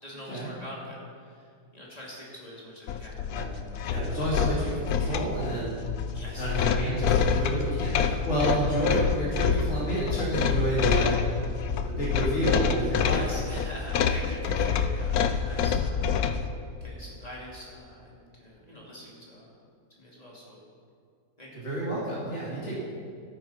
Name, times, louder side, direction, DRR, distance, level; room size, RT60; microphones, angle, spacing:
voice 1, 0.0-1.5 1.7-3.2 6.1-6.8 13.0-16.0 16.8-19.6 20.0-20.6 21.4-21.6, equal, 25° left, -5 dB, 2.6 m, -44 dB
sound 1, 2.9-16.5, left 7 dB, 85° left, 1.2 m, -27 dB
voice 2, 3.9-5.8 6.4-11.2 11.8-13.3 21.5-22.8, right 1 dB, 50° left, -8 dB, 2.8 m, -29 dB
12.0 x 9.1 x 5.7 m, 2.3 s
omnidirectional pair, 1.6 m